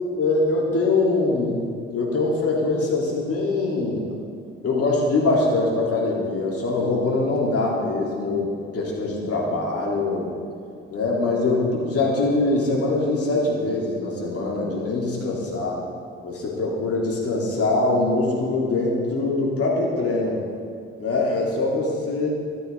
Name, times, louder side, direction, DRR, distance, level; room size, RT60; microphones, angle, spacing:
voice 1, 0.1-1.6 1.9-4.1 4.6-10.3 10.9-15.8 16.2-20.4 21.0-22.3, left 2 dB, 45° left, -4 dB, 3.7 m, -23 dB
15.0 x 12.0 x 3.9 m, 2.4 s
figure-of-eight pair, 45°, 33 cm